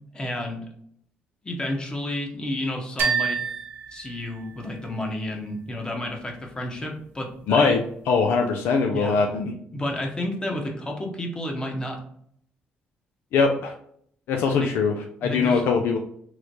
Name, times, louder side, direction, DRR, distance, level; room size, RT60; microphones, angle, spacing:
voice 1, 0.1-0.6 1.4-3.4 3.9-7.7 8.9-9.2 9.7-12.0 14.5-14.7 15.2-15.7, left 1 dB, 25° left, 1 dB, 1.0 m, -31 dB
sound 1, 3.0-4.9, right 6 dB, 70° right, 0.6 m, -28 dB
voice 2, 7.5-7.8 8.1-9.5 13.3-13.7 14.3-15.0 15.2-16.0, left 5 dB, 80° left, 3 dB, 0.4 m, -21 dB
3.1 x 2.1 x 3.9 m, 0.66 s
cardioid pair, 75°, 4 cm